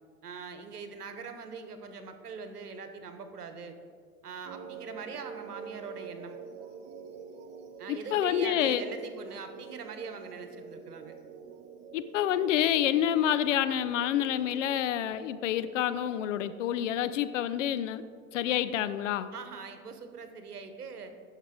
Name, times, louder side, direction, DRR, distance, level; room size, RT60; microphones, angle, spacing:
voice 1, 0.2-3.7 4.2-6.4 7.8-11.1 19.3-21.1, right 5 dB, 85° right, 8 dB, 1.1 m, -42 dB
sound 1, 4.4-17.9, right 6 dB, 30° right, 0.7 m, -47 dB
voice 2, 7.9-8.8 11.9-18.0 18.3-19.3, left 11 dB, 55° left, 13 dB, 0.5 m, -28 dB
10.5 x 6.5 x 3.8 m, 2.1 s
hypercardioid pair, 110°, 45 cm